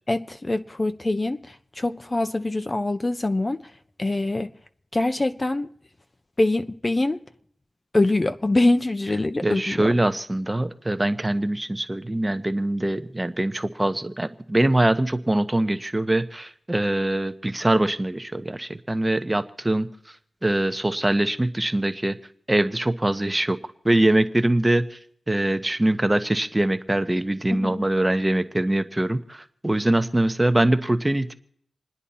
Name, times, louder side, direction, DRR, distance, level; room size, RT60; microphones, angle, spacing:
voice 1, 0.1-3.7 4.0-4.5 4.9-5.7 6.4-7.2 7.9-9.9 27.5-27.8, left 2 dB, 30° left, 0.6 m, -24 dB
voice 2, 9.4-20.2 20.4-22.2 22.5-23.6 23.8-25.0 25.3-31.3, right 1 dB, 15° right, 0.9 m, -23 dB
27.5 x 9.9 x 4.3 m
wide cardioid pair, 75°, 0 cm